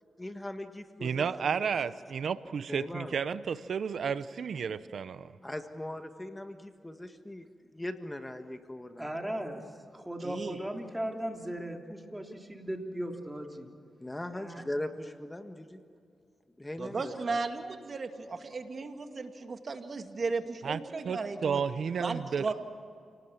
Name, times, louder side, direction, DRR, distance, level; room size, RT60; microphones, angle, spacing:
voice 1, 0.2-1.7 2.7-3.1 5.4-7.4 7.7-9.1 14.0-15.8 16.6-17.4, left 1 dB, 15° left, 7 dB, 1.6 m, -40 dB
voice 2, 1.0-5.3 20.6-20.8 21.0-22.4, right 6 dB, 70° right, 14 dB, 0.7 m, -32 dB
voice 3, 9.0-9.6 9.9-13.7 14.3-14.6, right 1 dB, 10° right, 2 dB, 3.3 m, -37 dB
voice 4, 10.2-10.6 16.8-21.6 22.0-22.5, right 4 dB, 50° right, 6 dB, 2.2 m, -35 dB
28.5 x 19.0 x 7.3 m, 2.4 s
cardioid pair, 70°, 0 cm